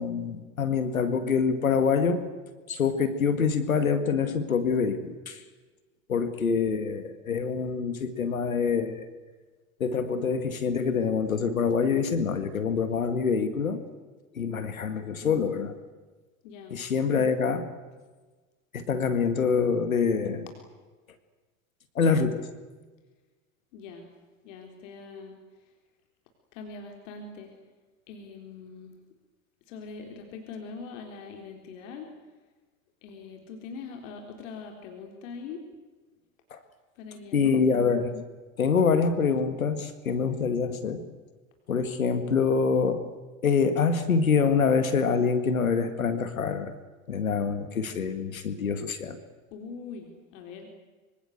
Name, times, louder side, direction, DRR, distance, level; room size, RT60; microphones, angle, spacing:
voice 1, 0.0-2.3 2.7-5.4 6.1-9.1 9.8-13.8 14.3-15.7 16.7-17.7 18.7-20.5 22.0-22.5 36.5-36.6 37.3-38.2 38.6-41.0 41.7-43.1 43.4-46.7 47.1-49.2, left 5 dB, 85° left, 10 dB, 2.1 m, -25 dB
voice 2, 16.4-16.7 23.7-24.1 24.4-25.4 26.5-27.5 28.1-28.9 29.7-32.1 33.0-35.6 37.0-37.6 49.5-50.7, left 5 dB, 65° left, 3 dB, 4.0 m, -42 dB
25.0 x 25.0 x 8.0 m, 1.3 s
hypercardioid pair, 80°, 40 cm